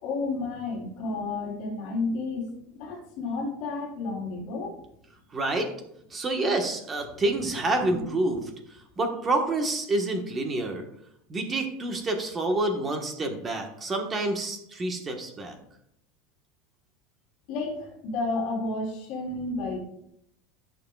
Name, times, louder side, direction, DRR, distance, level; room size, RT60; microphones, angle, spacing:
voice 1, 0.0-4.8 7.1-7.2 7.8-8.1 17.5-19.8, left 3 dB, 50° left, -2 dB, 3.6 m, -31 dB
voice 2, 5.3-5.7 6.1-8.4 9.0-10.8 11.3-15.6, right 2 dB, 20° right, 4 dB, 1.3 m, -28 dB
16.5 x 6.7 x 2.4 m, 0.77 s
supercardioid pair, 160°, 0 cm